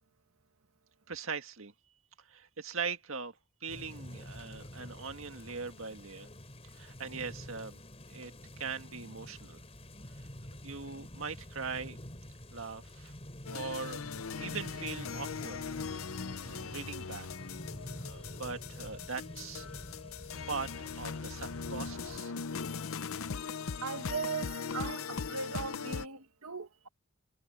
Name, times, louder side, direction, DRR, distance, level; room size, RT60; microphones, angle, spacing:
voice 1, 1.1-1.7 2.2-3.4 3.6-6.3 6.6-7.8 8.1-8.3 8.6-9.6 10.1-10.3 10.6-12.0 12.5-13.1 13.5-14.0 14.4-15.6 15.9-17.3 18.0-19.7 20.5-22.3, right 5 dB, 65° right, 1.9 m, -41 dB
sound 1, 3.7-22.2, equal, 30° left, 4.3 m, -48 dB
sound 2, 13.4-26.1, left 5 dB, 75° left, 0.7 m, -40 dB
voice 2, 23.8-26.9, right 5 dB, 85° right, 1.9 m, -38 dB
head